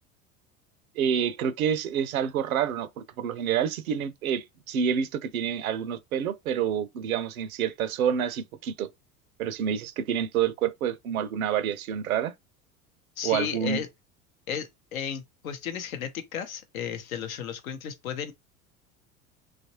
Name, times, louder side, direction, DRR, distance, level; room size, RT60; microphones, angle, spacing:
voice 1, 1.0-8.9 9.4-12.3 13.2-13.8, right 8 dB, 70° right, 0.6 m, -28 dB
voice 2, 13.2-13.9 14.5-18.3, left 8 dB, 70° left, 0.7 m, -34 dB
3.0 x 2.4 x 2.8 m
figure-of-eight pair, 70°, 44 cm